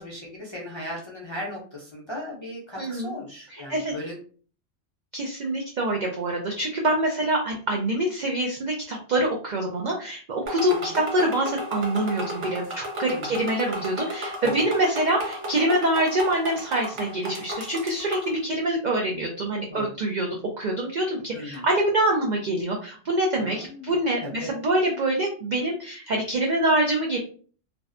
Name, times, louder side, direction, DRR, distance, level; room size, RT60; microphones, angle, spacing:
voice 1, 0.0-4.2 10.6-11.0 13.0-13.3 14.4-14.6 19.7-19.9 21.3-21.7 23.3-23.9 24.2-24.5, left 1 dB, 40° left, -5 dB, 0.4 m, -37 dB
voice 2, 2.8-3.1 3.5-3.9 5.1-27.2, right 1 dB, 75° right, 1 dB, 0.4 m, -25 dB
sound 1, 10.5-18.4, equal, 60° right, 0.9 m, -34 dB
2.5 x 2.1 x 2.4 m, 0.42 s
omnidirectional pair, 1.3 m